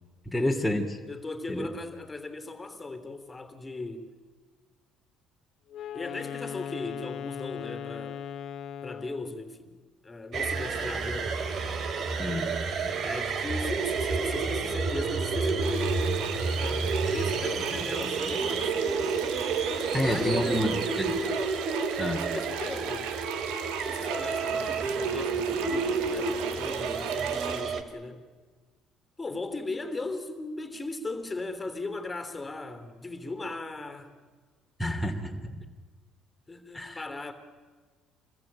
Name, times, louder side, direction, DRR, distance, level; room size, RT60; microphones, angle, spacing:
voice 1, 0.3-1.0 1.5-1.7 12.2-12.6 19.9-21.1 22.0-22.2 34.8-35.6 36.7-37.0, left 1 dB, 5° left, 2.9 m, -29 dB
voice 2, 1.1-4.1 5.9-8.2 8.8-9.8 10.0-11.4 13.0-18.8 20.0-20.8 22.1-23.1 23.8-28.2 29.2-34.2 36.5-37.3, left 3 dB, 20° left, 3.3 m, -38 dB
Wind instrument woodwind instrument, 5.7-9.4, left 9 dB, 60° left, 1.2 m, -38 dB
sound 1, 10.3-27.8, right 4 dB, 55° right, 2.8 m, -30 dB
sound 2, 15.6-27.6, right 9 dB, 80° right, 1.6 m, -39 dB
26.5 x 21.0 x 8.8 m
supercardioid pair, 70°, 0 cm